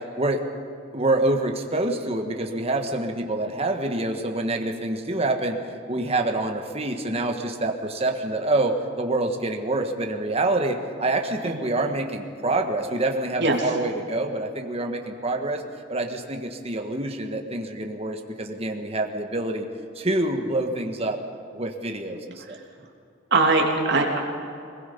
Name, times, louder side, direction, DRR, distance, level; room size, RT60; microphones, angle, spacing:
voice 1, 0.9-5.6 5.9-15.6 15.9-19.7 20.0-21.2 21.5-22.4, right 2 dB, 30° right, 3 dB, 1.6 m, -26 dB
voice 2, 13.4-13.7 23.3-24.2, right 3 dB, 55° right, 0 dB, 3.0 m, -21 dB
23.0 x 21.0 x 5.4 m, 2.6 s
head